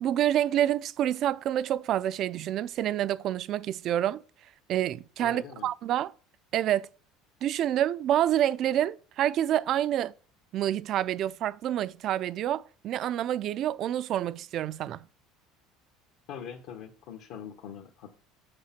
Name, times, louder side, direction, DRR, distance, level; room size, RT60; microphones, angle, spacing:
voice 1, 0.0-4.2 4.7-6.1 6.5-6.9 7.4-10.1 10.5-15.1, right 11 dB, 45° right, 0.4 m, -28 dB
voice 2, 5.2-5.7 16.3-18.1, left 8 dB, 65° left, 1.1 m, -42 dB
6.8 x 6.5 x 5.8 m
cardioid pair, 135°, 0 cm